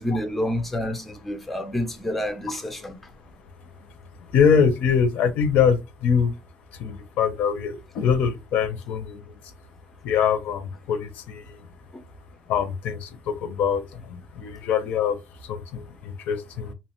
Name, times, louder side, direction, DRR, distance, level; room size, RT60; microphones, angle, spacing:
voice 1, 0.0-3.0 11.9-12.0, left 1 dB, 5° left, 0.4 m, -28 dB
voice 2, 4.3-6.3 6.7-9.4 10.0-11.6 12.5-15.2 15.4-16.7, left 7 dB, 70° left, 0.5 m, -23 dB
2.7 x 2.1 x 2.9 m
cardioid pair, 170°, 3 cm